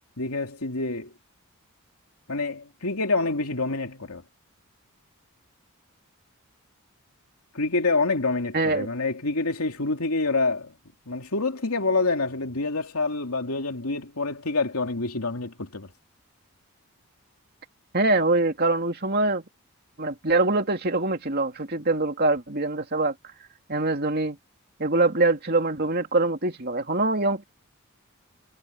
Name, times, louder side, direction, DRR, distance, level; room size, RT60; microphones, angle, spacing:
voice 1, 0.2-1.1 2.3-4.2 7.5-10.7 11.1-15.9, left 3 dB, 90° left, 2.7 m, -27 dB
voice 2, 8.5-8.9 17.9-19.4 20.0-23.1 23.7-24.4 24.8-27.4, right 2 dB, 45° right, 2.7 m, -24 dB
head